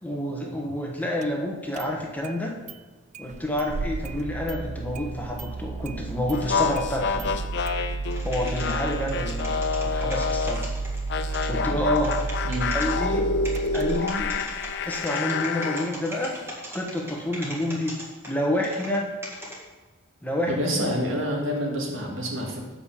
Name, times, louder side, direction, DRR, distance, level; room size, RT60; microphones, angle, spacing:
voice 1, 0.0-2.5 3.2-7.3 8.2-10.7 11.5-12.2 12.7-13.3 13.7-14.3 14.8-16.3 16.7-17.9 18.3-19.0 20.2-20.8, left 1 dB, 10° left, -1 dB, 1.2 m, -28 dB
Engine starting, 1.2-1.3 1.7-2.4 2.7-2.8 3.1-15.1, right 3 dB, 35° right, 0.3 m, -32 dB
sound 1, 6.3-10.7 11.1-15.9, left 5 dB, 55° left, 0.5 m, -28 dB
sound 2, 8.1-11.5 11.9-12.9 13.4-19.0 19.2-19.6, right 1 dB, 10° right, 1.7 m, -38 dB
voice 2, 12.5-12.8 20.5-22.6, equal, 70° right, 0 dB, 1.9 m, -27 dB
7.0 x 5.3 x 7.0 m, 1.3 s
head